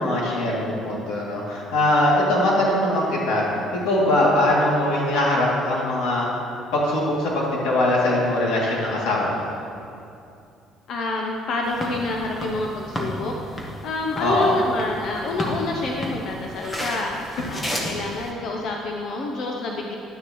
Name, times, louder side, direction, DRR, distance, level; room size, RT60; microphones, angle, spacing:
voice 1, 0.0-3.4 3.8-6.3 6.7-9.4 14.2-14.5, left 1 dB, 80° left, -5 dB, 2.5 m, -21 dB
voice 2, 10.9-19.9, left 2 dB, 45° left, 1 dB, 0.7 m, -28 dB
sound 1, 11.6-18.3, equal, 10° left, 1.1 m, -33 dB
11.0 x 9.9 x 3.1 m, 2.6 s
cardioid pair, 175°, 0 cm